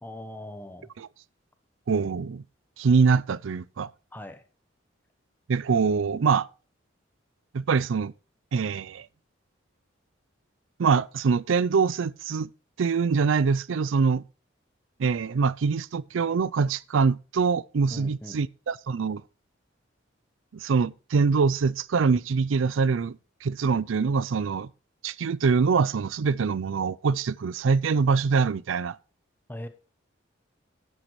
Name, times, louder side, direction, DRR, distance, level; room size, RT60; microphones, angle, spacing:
voice 1, 0.0-0.9 4.1-4.4 17.9-18.4 29.5-29.7, left 1 dB, 10° left, 0.9 m, -40 dB
voice 2, 1.9-2.4 2.8-3.9 5.5-6.5 7.5-8.1 8.5-9.1 10.8-12.5 12.8-14.2 15.0-19.2 20.5-24.7 25.0-29.0, right 5 dB, 80° right, 0.4 m, -24 dB
11.0 x 10.5 x 3.1 m
head